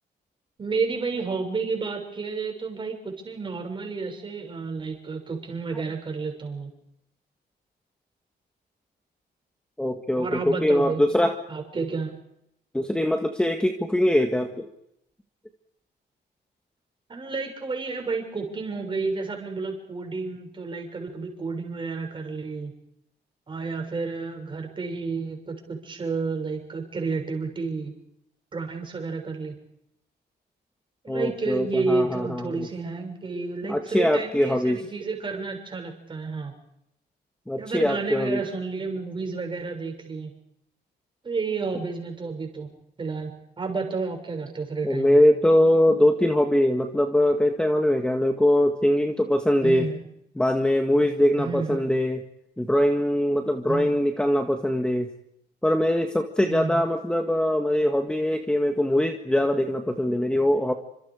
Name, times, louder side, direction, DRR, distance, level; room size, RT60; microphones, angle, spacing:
voice 1, 0.6-6.7 10.2-11.0 11.5-12.1 17.1-22.7 23.5-27.9 28.5-29.5 31.0-36.5 37.6-40.3 41.2-42.7 43.0-43.3 43.6-45.2 49.6-50.0 51.4-51.8 53.7-53.9 56.5-56.9, right 4 dB, 25° right, 3 dB, 6.8 m, -31 dB
voice 2, 9.8-11.3 12.7-14.7 31.1-32.7 33.7-34.8 37.5-38.4 44.8-49.9 50.3-52.2 52.6-55.1 55.6-60.7, left 1 dB, 5° left, 4 dB, 1.8 m, -22 dB
29.5 x 26.5 x 5.0 m, 0.77 s
cardioid pair, 160°, 18 cm